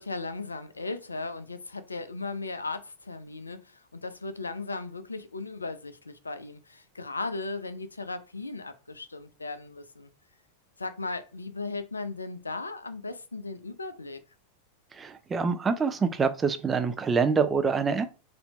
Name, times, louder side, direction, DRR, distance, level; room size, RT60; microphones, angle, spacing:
voice 1, 0.0-10.1 10.8-14.2, left 3 dB, 80° left, 0.5 m, -37 dB
voice 2, 14.9-18.1, right 5 dB, 20° right, 0.5 m, -26 dB
4.2 x 2.7 x 4.1 m
figure-of-eight pair, 90°, 0 cm